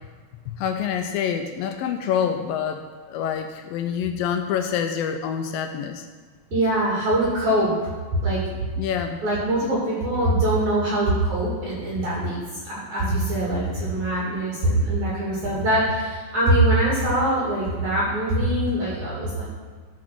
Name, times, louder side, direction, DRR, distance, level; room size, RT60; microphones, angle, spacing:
voice 1, 0.5-2.8 3.1-6.0 8.8-9.2, left 8 dB, 80° left, 6 dB, 2.3 m, -26 dB
voice 2, 6.5-7.7 8.2-8.4 9.2-19.4, right 1 dB, 55° right, -6 dB, 3.8 m, -23 dB
13.0 x 6.1 x 5.9 m, 1.5 s
omnidirectional pair, 4.2 m